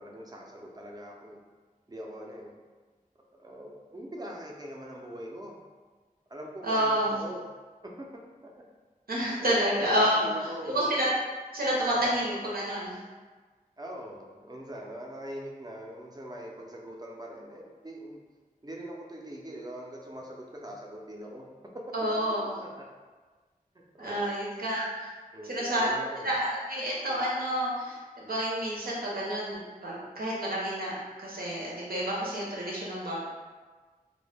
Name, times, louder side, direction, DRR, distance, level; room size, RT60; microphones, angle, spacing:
voice 1, 0.0-1.4 1.9-2.5 3.4-5.6 6.3-7.4 8.0-8.1 8.4-8.5 9.4-9.5 9.8-10.7 11.9-12.0 13.8-18.2 18.6-21.5 22.6-22.8 23.9-24.3 25.3-26.4, equal, 25° right, -1 dB, 0.4 m, -42 dB
voice 2, 6.6-7.2 9.1-10.2 10.7-11.1 11.5-13.0 21.9-22.5 24.0-25.1 25.4-25.9 26.2-33.2, equal, 85° right, -5 dB, 0.7 m, -29 dB
2.1 x 2.1 x 3.2 m, 1.4 s
wide cardioid pair, 70°, 15 cm